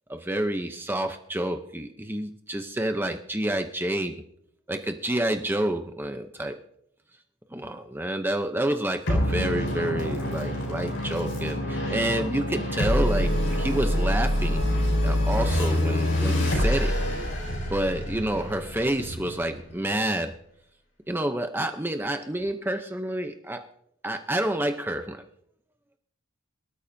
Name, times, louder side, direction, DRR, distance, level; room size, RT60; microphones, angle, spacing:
voice 1, 0.1-4.1 4.7-6.6 7.5-14.6 15.0-17.0 17.7-20.3 21.1-23.7 24.0-25.2, right 1 dB, 10° right, 6 dB, 0.7 m, -29 dB
sound 1, 9.1-19.9, left 1 dB, 70° left, 5.8 m, -26 dB
24.0 x 13.0 x 2.7 m, 0.72 s
head